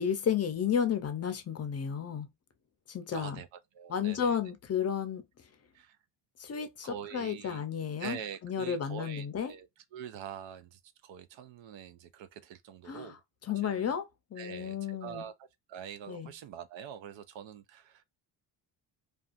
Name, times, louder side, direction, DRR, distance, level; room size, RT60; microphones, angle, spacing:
voice 1, 0.0-2.3 2.9-3.4 3.9-5.2 6.4-9.5 12.9-15.3 16.1-16.3, left 8 dB, 35° left, 0.5 m, -33 dB
voice 2, 3.1-3.5 3.7-4.4 5.7-6.0 6.8-7.6 8.0-9.7 9.9-13.2 13.6-13.9 14.4-15.3 15.7-18.0, right 8 dB, 70° right, 0.6 m, -44 dB
2.5 x 2.3 x 2.4 m
cardioid pair, 115°, 47 cm